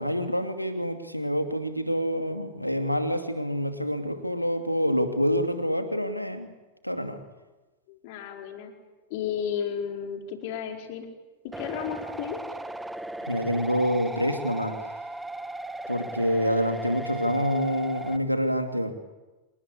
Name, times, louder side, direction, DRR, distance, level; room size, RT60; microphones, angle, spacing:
voice 1, 0.0-6.5 6.8-7.2 13.3-14.8 15.9-18.9, equal, 90° left, 7 dB, 2.6 m, -27 dB
voice 2, 7.9-8.7 9.1-11.1 11.4-12.4, left 8 dB, 50° left, 3 dB, 4.7 m, -33 dB
sound 1, 11.5-18.2, right 2 dB, 5° right, 1.4 m, -36 dB
27.0 x 20.5 x 9.9 m, 1.2 s
figure-of-eight pair, 90°, 0 cm